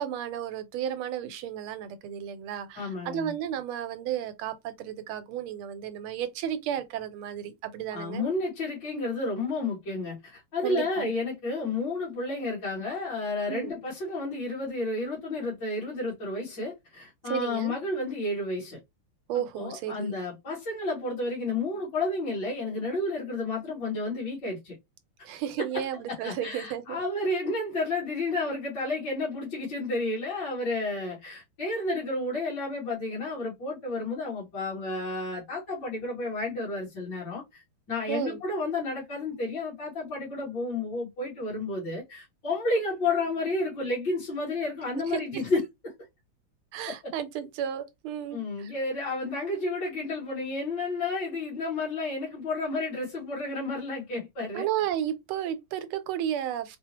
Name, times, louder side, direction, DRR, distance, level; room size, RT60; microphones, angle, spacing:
voice 1, 0.0-8.2 10.6-11.1 13.5-13.7 17.3-17.7 19.3-20.1 25.2-27.0 38.1-38.4 45.1-45.4 46.7-48.7 54.5-56.8, right 10 dB, 80° right, 1.5 m, -33 dB
voice 2, 2.8-3.3 7.9-18.8 19.6-24.8 25.6-37.6 37.9-45.6 47.0-47.1 48.3-54.7, left 2 dB, 55° left, 2.2 m, -31 dB
4.6 x 2.0 x 2.8 m
omnidirectional pair, 2.4 m